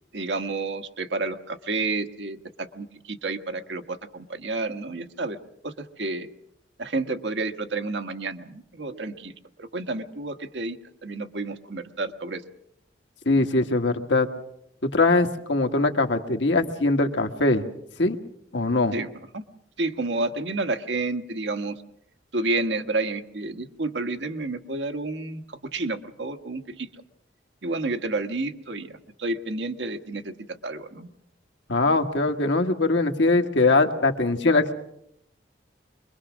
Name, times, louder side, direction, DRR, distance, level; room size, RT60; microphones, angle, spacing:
voice 1, 0.1-5.4 5.6-6.3 6.8-9.3 9.6-10.8 11.0-12.4 18.9-19.4 19.8-21.8 22.3-26.9 27.6-28.9 29.2-30.3 30.6-31.1, right 3 dB, 75° right, 7 dB, 1.4 m, -30 dB
voice 2, 13.2-14.3 14.8-17.7 18.0-18.2 18.5-18.9 31.7-34.7, left 2 dB, 85° left, 5 dB, 1.6 m, -21 dB
25.0 x 22.0 x 6.2 m, 0.74 s
head